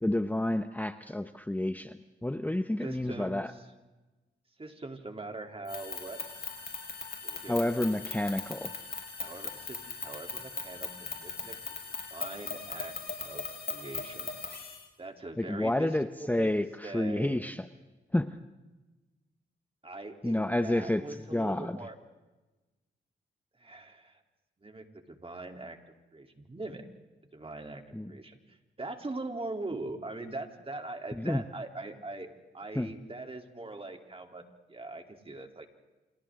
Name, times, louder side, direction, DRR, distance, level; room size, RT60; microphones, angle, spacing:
voice 1, 0.0-3.5 7.5-8.7 15.4-17.7 18.1-18.4 20.2-21.8 27.9-28.1 31.1-31.4 32.7-32.9, left 1 dB, 10° left, 10 dB, 0.9 m, -30 dB
voice 2, 2.8-3.5 4.6-6.2 7.2-7.9 9.2-11.6 12.1-12.9 13.2-14.3 15.0-15.9 16.2-16.5 16.8-17.4 19.8-21.9 23.6-24.2 24.6-25.8 26.1-26.9 27.3-27.8 28.1-32.3 32.5-34.4 34.7-35.7, right 2 dB, 30° right, 4 dB, 3.4 m, -41 dB
sound 1, 5.6-14.8, left 4 dB, 55° left, 5.3 m, -39 dB
29.5 x 27.5 x 3.8 m, 1.1 s
cardioid pair, 65°, 19 cm